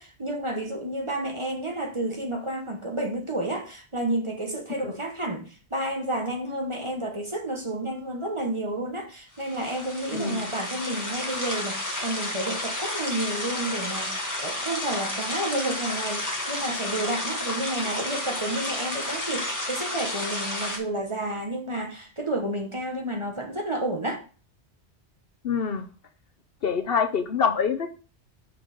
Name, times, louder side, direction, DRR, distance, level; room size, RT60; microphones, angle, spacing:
voice 1, 0.0-24.2, right 1 dB, 30° right, 1.1 m, -31 dB
sound 1, 9.4-20.8, left 1 dB, 15° left, 1.6 m, -31 dB
voice 2, 10.1-10.4 25.4-25.8 26.6-27.9, left 6 dB, 60° left, 0.9 m, -25 dB
6.2 x 5.4 x 5.1 m
omnidirectional pair, 1.2 m